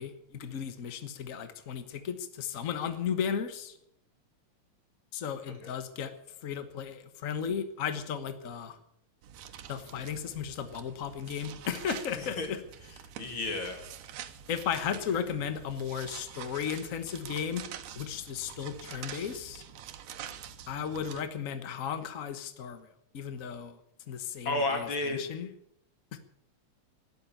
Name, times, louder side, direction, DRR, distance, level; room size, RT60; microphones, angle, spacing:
voice 1, 0.0-3.8 5.1-6.1 6.4-8.8 9.7-12.6 14.5-17.6 18.0-19.6 20.7-22.9 23.1-23.8 24.1-25.5 26.1-26.2, left 7 dB, 80° left, 10 dB, 0.7 m, -35 dB
sound 1, 9.2-21.2, right 9 dB, 85° right, 2.5 m, -46 dB
voice 2, 12.2-12.5 13.2-13.8 24.4-25.2, left 2 dB, 45° left, 4 dB, 3.2 m, -32 dB
12.5 x 11.5 x 9.1 m, 0.74 s
omnidirectional pair, 3.4 m